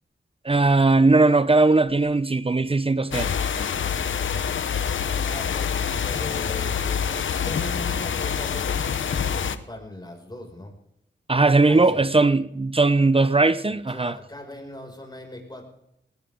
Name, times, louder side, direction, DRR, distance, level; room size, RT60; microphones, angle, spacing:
voice 1, 0.4-3.3 11.3-14.2, right 3 dB, 30° right, 0.9 m, -19 dB
sound 1, 3.1-9.6, left 7 dB, 85° left, 0.9 m, -26 dB
voice 2, 4.8-10.7 11.6-12.0 13.7-15.6, left 1 dB, 20° left, 6.3 m, -40 dB
19.5 x 17.5 x 3.8 m
cardioid pair, 65°, 19 cm